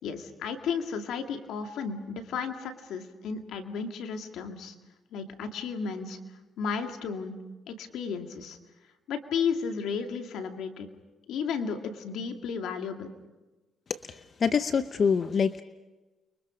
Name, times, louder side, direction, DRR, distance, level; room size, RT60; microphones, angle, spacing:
voice 1, 0.0-4.7 5.1-6.2 6.6-7.4 7.7-8.6 9.1-10.9 11.3-13.1, left 6 dB, 80° left, 5 dB, 2.3 m, -33 dB
voice 2, 14.4-15.6, left 6 dB, 45° left, 11 dB, 0.8 m, -24 dB
30.0 x 24.0 x 5.1 m, 1.1 s
cardioid pair, 90°, 0 cm